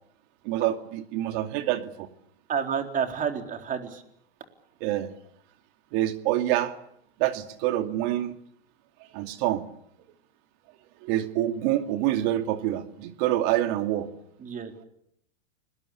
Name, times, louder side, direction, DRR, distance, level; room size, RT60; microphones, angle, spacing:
voice 1, 0.4-2.1 4.8-5.1 5.9-6.8 7.2-8.4 9.0-9.6 11.0-14.1, right 13 dB, 55° right, 8 dB, 2.4 m, -26 dB
voice 2, 2.5-4.0 14.4-14.7, right 7 dB, 25° right, 6 dB, 4.0 m, -29 dB
29.5 x 20.5 x 8.7 m, 0.75 s
hypercardioid pair, 125°, 30 cm